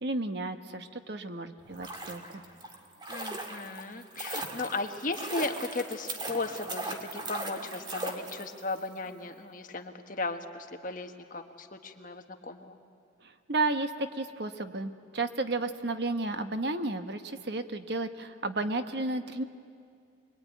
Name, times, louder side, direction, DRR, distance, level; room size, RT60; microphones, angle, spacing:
voice 1, 0.0-2.4 13.2-19.4, right 2 dB, 55° right, 8 dB, 1.1 m, -33 dB
sound 1, 1.6-8.8 9.0-9.1, right 2 dB, 25° right, 1.8 m, -39 dB
voice 2, 3.1-12.8, left 3 dB, 45° left, 5 dB, 1.3 m, -36 dB
24.5 x 22.0 x 9.3 m, 2.2 s
head